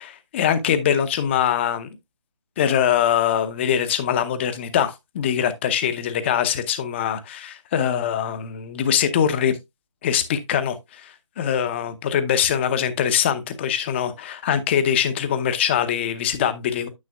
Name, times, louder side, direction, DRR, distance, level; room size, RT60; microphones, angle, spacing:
voice 1, 0.0-1.9 2.6-9.6 10.0-16.9, left 9 dB, 20° left, 0.8 m, -23 dB
9.6 x 7.5 x 2.3 m
figure-of-eight pair, 155°, 16 cm